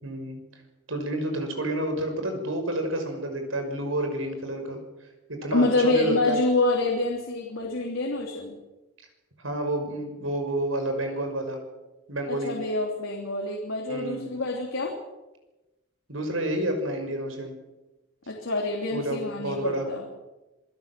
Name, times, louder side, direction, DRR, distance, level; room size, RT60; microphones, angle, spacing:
voice 1, 0.0-0.4 0.9-4.8 5.3-6.4 9.4-11.6 12.1-12.5 13.9-14.3 16.1-17.6 18.9-19.9, right 1 dB, 75° right, 5 dB, 6.0 m, -29 dB
voice 2, 5.5-8.6 12.3-14.9 18.3-20.0, left 2 dB, 75° left, 0 dB, 3.2 m, -26 dB
26.5 x 16.5 x 7.6 m, 1.1 s
head